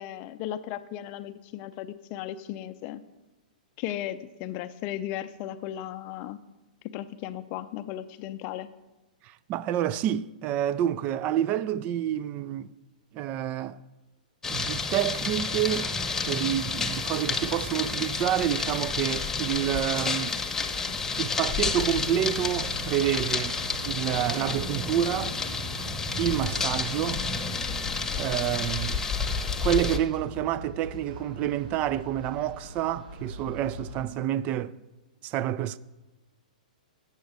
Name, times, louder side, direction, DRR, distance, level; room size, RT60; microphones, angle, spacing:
voice 1, 0.0-3.0 3.8-6.4 6.9-8.7, left 12 dB, 40° left, 0.5 m, -36 dB
voice 2, 9.2-12.7 13.1-13.8 14.5-15.9 16.2-20.5 21.2-23.6 23.8-25.3 26.2-27.2 28.2-29.0 29.6-34.7 35.2-35.8, right 11 dB, 30° right, 0.3 m, -28 dB
sound 1, 14.4-30.0, left 4 dB, 10° left, 0.8 m, -30 dB
sound 2, 20.5-34.0, right 1 dB, 70° right, 3.0 m, -42 dB
8.1 x 6.4 x 6.8 m
hypercardioid pair, 125°, 5 cm